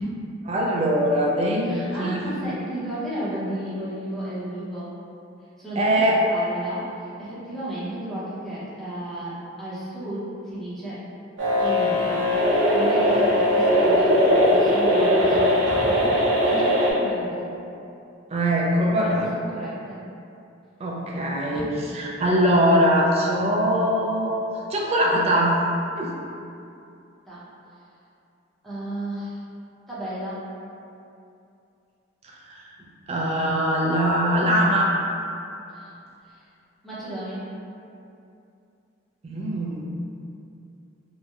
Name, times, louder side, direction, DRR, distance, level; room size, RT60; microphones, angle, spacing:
voice 1, 0.5-2.2 5.8-6.2 18.3-19.3 20.8-24.3 24.7-25.6 26.0-26.1 32.5-32.6 33.1-35.0 39.2-39.9, equal, 35° right, -2 dB, 0.3 m, -22 dB
voice 2, 1.6-4.9 5.6-6.0 6.3-11.0 11.6-12.3 12.7-14.2 14.5-17.5 18.6-20.0 21.5-21.8 27.3-27.4 28.6-29.4 29.9-30.4 35.7-35.9 36.3-36.4 36.8-37.5, right 1 dB, ahead, -11 dB, 0.6 m, -33 dB
sound 1, 11.4-16.9, equal, 70° right, 0.7 m, -19 dB
2.8 x 2.0 x 2.3 m, 2.6 s
head